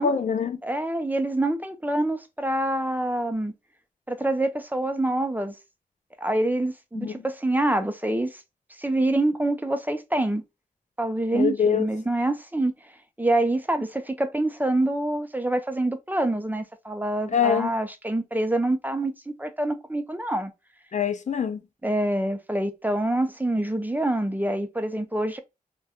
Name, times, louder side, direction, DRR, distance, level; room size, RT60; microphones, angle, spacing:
voice 1, 0.0-0.6 6.9-7.3 11.3-11.9 17.3-17.7 20.9-21.6, left 7 dB, 60° left, 0.4 m, -24 dB
voice 2, 0.6-3.5 4.1-5.6 6.2-8.4 8.8-10.4 11.0-12.7 13.2-20.5 21.8-25.4, right 1 dB, 10° right, 0.4 m, -26 dB
2.2 x 2.2 x 2.8 m
cardioid pair, 60°, 14 cm